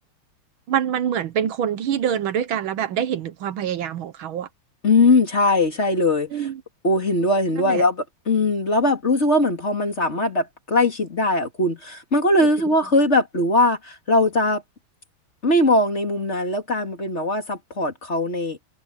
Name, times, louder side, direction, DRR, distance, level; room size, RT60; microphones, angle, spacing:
voice 1, 0.7-4.5 6.3-6.6 7.6-7.8, right 9 dB, 70° right, 1.7 m, -25 dB
voice 2, 4.8-6.3 6.8-14.6 15.4-18.6, left 2 dB, 30° left, 2.8 m, -20 dB
omnidirectional pair, 2.4 m